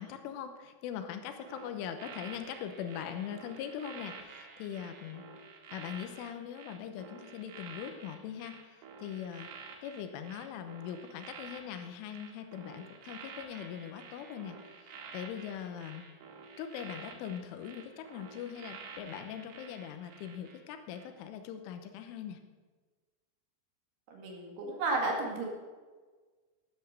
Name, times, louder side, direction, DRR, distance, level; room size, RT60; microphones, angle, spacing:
voice 1, 0.0-5.3 5.7-9.5 9.8-16.1 16.6-22.4, left 9 dB, 80° left, 8 dB, 3.3 m, -41 dB
sound 1, 1.4-20.6 20.9-21.2, right 5 dB, 75° right, 4.6 m, -50 dB
voice 2, 24.1-25.5, right 2 dB, 60° right, 0 dB, 3.7 m, -33 dB
12.5 x 11.5 x 6.6 m, 1.4 s
omnidirectional pair, 5.8 m